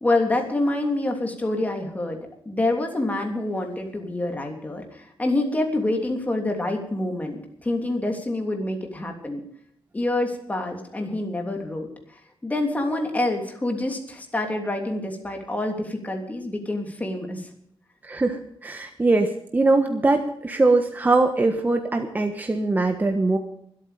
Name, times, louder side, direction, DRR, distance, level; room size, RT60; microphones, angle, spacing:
voice 1, 0.0-2.2 2.4-9.4 9.9-17.5, left 2 dB, 15° left, 3 dB, 3.1 m, -27 dB
voice 2, 18.0-23.4, right 3 dB, 20° right, 5 dB, 1.3 m, -22 dB
24.0 x 8.9 x 5.1 m, 0.65 s
wide cardioid pair, 135°, 9 cm